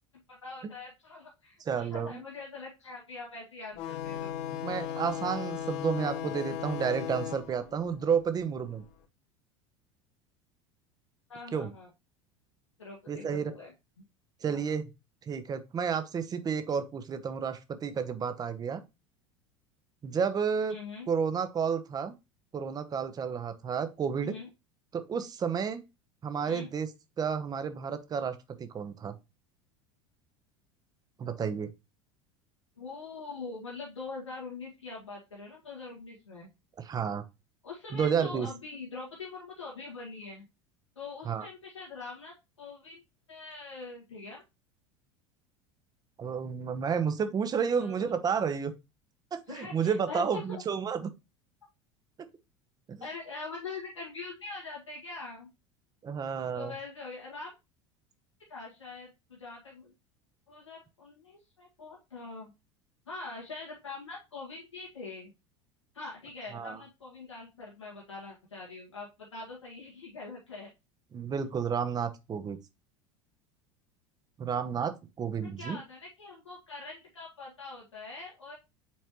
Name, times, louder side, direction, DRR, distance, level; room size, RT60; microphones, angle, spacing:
voice 1, 0.3-4.3 11.3-11.9 12.8-13.7 14.5-14.6 20.7-21.1 24.2-24.5 26.4-26.7 32.8-36.5 37.6-40.5 41.0-43.0 43.3-44.4 47.7-48.2 49.5-50.6 53.0-55.5 56.5-57.5 58.5-59.9 60.5-62.5 63.1-65.3 65.9-70.7 75.4-78.6, left 3 dB, 80° left, 1.6 m, -43 dB
voice 2, 1.6-2.2 4.6-8.8 11.5-11.7 13.1-13.5 14.4-14.9 15.3-18.8 20.0-20.8 21.1-22.1 22.5-24.4 24.9-25.8 26.2-26.9 27.2-29.1 31.2-31.7 36.8-37.2 37.9-38.5 41.2-41.5 46.2-48.7 49.3-51.1 52.9-53.0 56.0-56.7 66.5-66.8 71.1-72.6 74.4-75.8, right 6 dB, 25° right, 0.8 m, -31 dB
sound 1, 3.8-8.9, left 10 dB, 45° left, 0.8 m, -37 dB
7.3 x 4.4 x 3.0 m
figure-of-eight pair, 75°, 15 cm